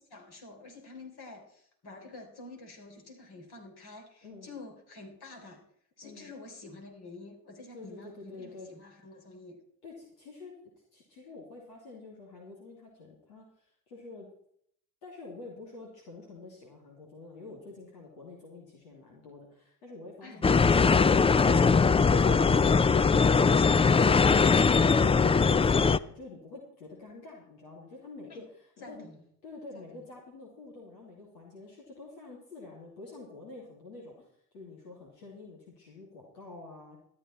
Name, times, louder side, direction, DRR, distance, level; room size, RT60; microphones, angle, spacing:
voice 1, 0.1-5.6 6.0-9.6 20.2-20.7 28.3-28.4 28.8-29.2 29.7-30.0, left 3 dB, 50° left, 2 dB, 4.1 m, -48 dB
voice 2, 7.7-8.7 9.8-10.5 10.9-14.3 15.0-21.4 21.7-29.1 29.4-34.3 34.5-37.0, left 3 dB, 80° left, -3 dB, 2.9 m, -48 dB
sound 1, 20.4-26.0, left 5 dB, 15° left, 0.4 m, -21 dB
13.0 x 11.5 x 4.4 m, 0.67 s
hypercardioid pair, 40°, 47 cm